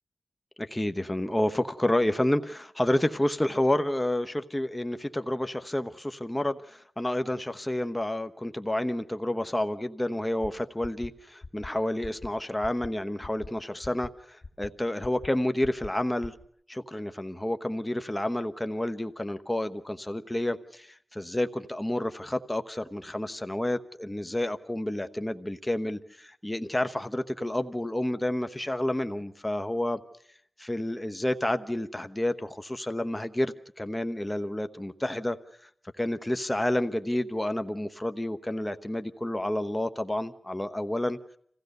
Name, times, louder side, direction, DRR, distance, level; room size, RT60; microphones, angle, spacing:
voice 1, 0.6-16.3 16.7-30.0 30.6-35.4 36.0-41.2, left 1 dB, 15° left, 10 dB, 1.0 m, -30 dB
sound 1, 10.4-10.5 10.8-11.1 11.4-11.7 12.0-12.3 12.6-12.9 13.2-13.5 13.8-14.1 14.4-14.7 15.0-15.3 15.6-15.9 16.2-16.4, left 3 dB, 55° left, 2.9 m, -42 dB
26.5 x 16.0 x 6.7 m, 0.65 s
wide cardioid pair, 65°, 0 cm